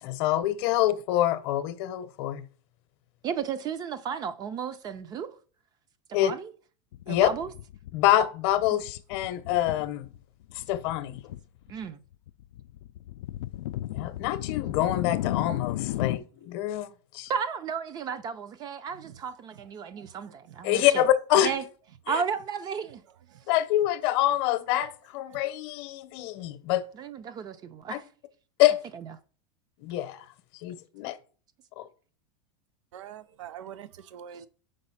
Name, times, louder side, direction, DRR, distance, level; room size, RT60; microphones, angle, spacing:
voice 1, 0.0-2.4 6.1-6.3 7.1-7.3 7.9-10.1 10.5-11.2 13.9-16.9 17.1-17.3 20.6-21.5 22.1-22.2 23.5-26.9 27.9-28.0 28.6-28.8 29.8-30.2 30.6-31.2 31.8-31.9, left 13 dB, 55° left, 0.8 m, -26 dB
voice 2, 3.2-5.3 6.1-6.5 7.1-7.5 11.7-12.0 17.3-21.1 21.3-21.6 22.1-23.0 26.9-28.0 28.9-29.1, right 7 dB, 25° right, 0.5 m, -33 dB
sound 1, 6.9-8.2 8.5-10.2 10.5-11.4 11.7-16.2, left 14 dB, 85° left, 0.4 m, -34 dB
voice 3, 32.9-34.5, right 9 dB, 90° right, 0.4 m, -44 dB
5.3 x 4.0 x 5.6 m
supercardioid pair, 140°, 15 cm